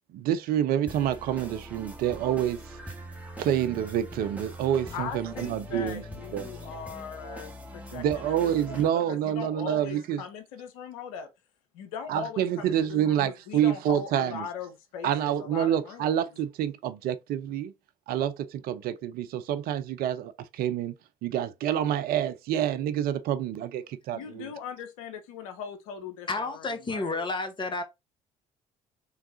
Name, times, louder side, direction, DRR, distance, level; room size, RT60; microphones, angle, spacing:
voice 1, 0.1-2.8 3.4-6.0 6.3-6.5 7.9-10.2 12.1-14.4 15.0-17.7 18.1-20.9 21.2-24.5, right 10 dB, 55° right, 0.5 m, -28 dB
sound 1, 0.9-8.9, equal, 10° right, 1.2 m, -42 dB
voice 2, 4.9-11.3 11.7-16.4 24.1-27.3, left 6 dB, 75° left, 0.7 m, -40 dB
voice 3, 26.3-27.8, left 3 dB, 25° left, 1.0 m, -31 dB
3.4 x 3.1 x 2.6 m
hypercardioid pair, 55°, 18 cm